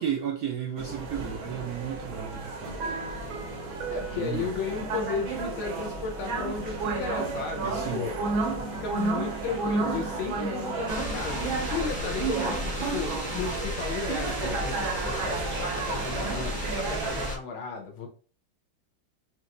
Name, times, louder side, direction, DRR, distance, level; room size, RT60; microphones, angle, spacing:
voice 1, 0.0-3.0 4.1-4.5 7.6-8.1, right 8 dB, 70° right, 1 dB, 0.9 m, -33 dB
sound 1, 0.8-17.3, right 3 dB, 90° right, 1.8 m, -32 dB
sound 2, 2.6-14.0, equal, 65° left, 1.2 m, -45 dB
voice 2, 3.9-8.1 8.6-18.1, left 5 dB, 85° left, 1 dB, 1.8 m, -34 dB
sound 3, 10.9-17.4, equal, 10° left, 0.4 m, -34 dB
5.2 x 3.0 x 2.5 m, 0.40 s
omnidirectional pair, 2.1 m